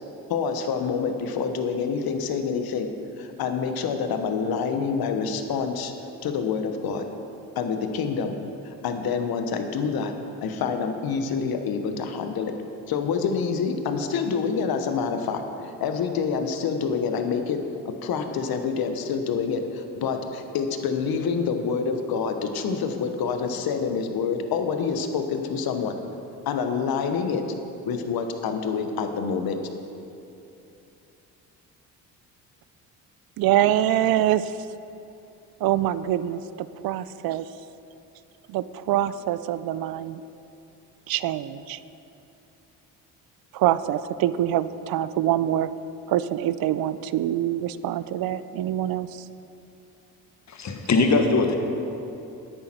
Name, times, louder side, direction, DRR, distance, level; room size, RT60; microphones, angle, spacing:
voice 1, 0.3-2.9 3.2-5.9 6.2-7.1 7.6-8.3 8.6-10.1 10.4-12.5 12.9-15.4 15.8-26.0 26.5-27.4 27.8-29.6, left 5 dB, 70° left, 7 dB, 1.0 m, -27 dB
voice 2, 33.4-34.7 35.6-37.5 38.5-40.2 41.1-41.8 43.5-45.7 46.1-49.2, right 12 dB, 65° right, 15 dB, 0.5 m, -25 dB
voice 3, 50.5-51.6, left 3 dB, 45° left, 5 dB, 1.3 m, -21 dB
10.5 x 8.7 x 4.3 m, 2.8 s
supercardioid pair, 65°, 38 cm